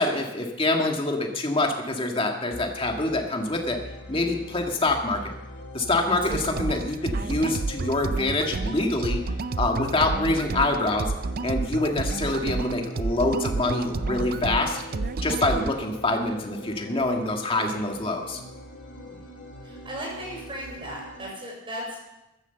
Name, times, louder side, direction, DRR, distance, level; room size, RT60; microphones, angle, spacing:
voice 1, 0.0-3.8 4.1-5.3 5.7-9.2 9.6-11.1 11.4-14.8 15.2-18.4, left 2 dB, 25° left, 2 dB, 1.8 m, -25 dB
sound 1, 2.5-21.3, left 1 dB, 60° left, 2.7 m, -42 dB
sound 2, 6.3-15.7, right 3 dB, 45° right, 0.5 m, -30 dB
voice 2, 18.9-19.2 19.6-22.0, equal, 25° right, -2 dB, 6.2 m, -37 dB
14.5 x 9.7 x 7.1 m, 0.95 s
head